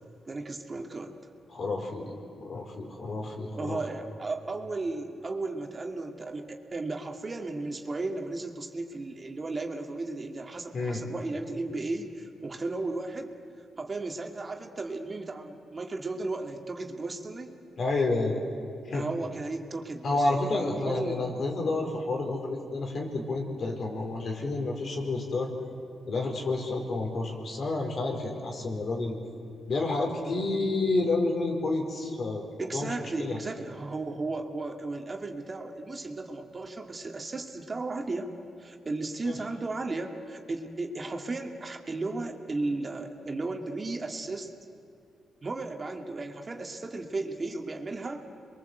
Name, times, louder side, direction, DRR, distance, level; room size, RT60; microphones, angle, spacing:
voice 1, 0.3-1.1 3.5-13.3 13.8-17.5 18.9-20.2 20.8-21.3 32.6-38.3 38.6-44.5 45.4-48.2, right 3 dB, 35° right, 3 dB, 2.4 m, -35 dB
voice 2, 1.5-3.8 10.7-11.0 17.8-18.4 18.8-19.1 20.0-25.5 26.1-29.1 29.7-33.4 39.2-39.4, left 2 dB, 55° left, 1 dB, 4.7 m, -30 dB
28.0 x 22.5 x 8.0 m, 2.4 s
cardioid pair, 65°, 0 cm